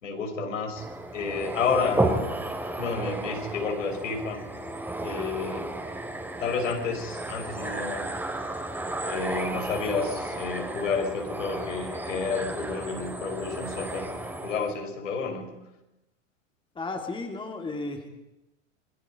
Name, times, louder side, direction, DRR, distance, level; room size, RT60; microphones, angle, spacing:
voice 1, 0.0-0.8 1.1-2.2 2.8-4.5 5.0-5.7 6.4-8.1 9.0-14.1 14.4-15.5, left 4 dB, 75° left, 3 dB, 5.3 m, -30 dB
sound 1, 0.8-14.7, right 2 dB, 5° right, 2.9 m, -33 dB
Keyboard (musical), 4.6-7.4, right 2 dB, 45° left, 5.4 m, -48 dB
voice 2, 16.7-18.1, left 3 dB, 15° left, 3 dB, 2.9 m, -34 dB
26.5 x 20.5 x 5.2 m, 0.94 s
hypercardioid pair, 105°, 38 cm